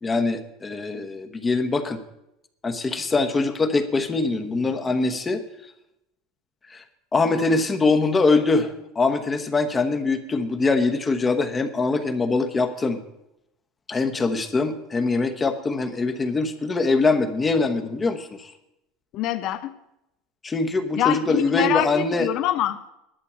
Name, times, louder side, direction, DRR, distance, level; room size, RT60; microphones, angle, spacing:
voice 1, 0.0-2.0 2.6-5.4 6.7-6.8 7.1-13.0 13.9-18.5 20.4-22.3, left 3 dB, 20° left, 7 dB, 1.1 m, -23 dB
voice 2, 19.1-19.7 21.0-22.8, left 13 dB, 50° left, 10 dB, 0.6 m, -25 dB
11.5 x 6.8 x 8.5 m, 0.86 s
supercardioid pair, 125°, 0 cm